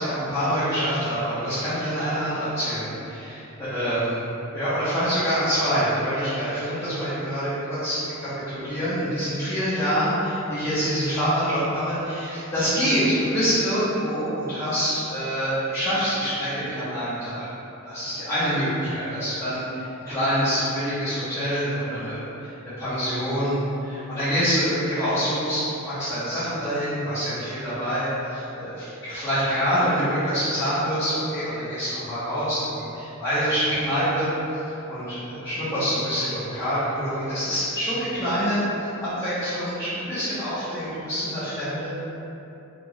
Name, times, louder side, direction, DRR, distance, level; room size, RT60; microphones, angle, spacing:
voice 1, 0.0-4.2 4.5-17.5 17.8-19.6 20.0-22.5 22.8-34.6 34.9-38.6 39.0-41.9, equal, 15° left, -17 dB, 0.8 m, -26 dB
3.8 x 2.3 x 3.0 m, 2.9 s
head